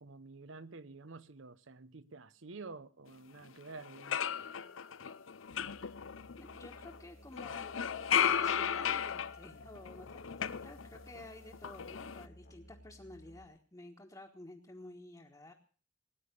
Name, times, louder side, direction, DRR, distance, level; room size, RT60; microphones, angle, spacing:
voice 1, 0.0-4.2, right 3 dB, 75° right, 0.9 m, -49 dB
sound 1, 3.4-3.5 3.8-7.0 7.3-11.2 11.5-12.3, left 8 dB, 90° left, 0.7 m, -35 dB
Musical instrument, 5.5-13.4, equal, 55° left, 1.9 m, -57 dB
voice 2, 6.4-15.5, left 2 dB, 20° left, 1.4 m, -52 dB
18.5 x 9.7 x 6.7 m
head